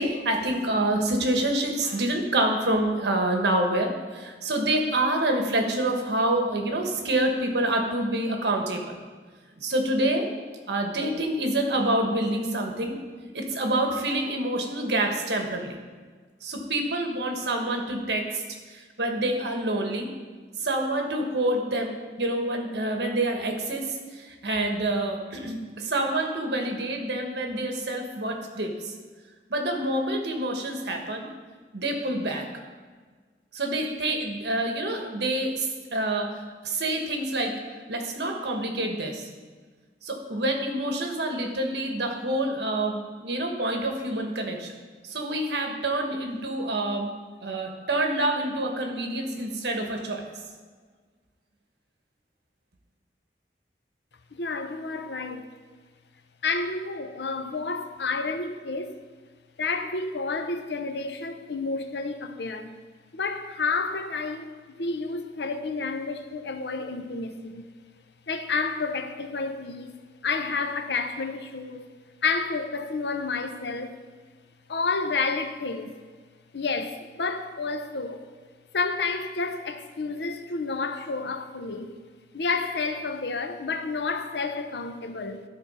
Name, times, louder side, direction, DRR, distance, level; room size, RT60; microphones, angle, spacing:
voice 1, 0.0-9.0 9.6-10.3 10.7-13.0 13.3-15.8 16.4-18.4 18.7-20.1 20.6-23.9 24.1-28.9 29.5-31.3 31.7-32.5 33.5-36.3 36.6-37.6 37.9-39.3 40.0-44.7 45.0-47.1 47.4-50.2, right 1 dB, 75° right, 1.3 m, -27 dB
voice 2, 54.3-55.4 56.4-58.9 59.6-62.8 63.1-64.5 64.8-67.7 68.3-69.9 70.2-71.9 72.2-73.9 74.7-75.9 76.5-78.2 78.7-81.9 82.3-85.4, left 4 dB, 75° left, 0.7 m, -30 dB
12.5 x 4.4 x 5.5 m
head